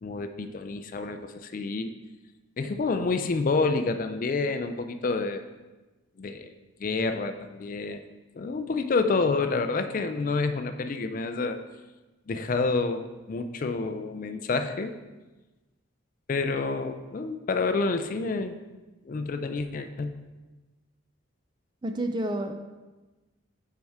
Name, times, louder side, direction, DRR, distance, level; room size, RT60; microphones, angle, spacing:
voice 1, 0.0-1.9 2.6-5.4 6.2-6.5 6.8-11.6 12.3-15.0 16.3-18.6 19.0-20.2, left 3 dB, 40° left, 8 dB, 0.3 m, -28 dB
voice 2, 21.8-22.5, right 1 dB, 20° right, 5 dB, 0.4 m, -29 dB
9.5 x 4.5 x 3.5 m, 1.2 s
head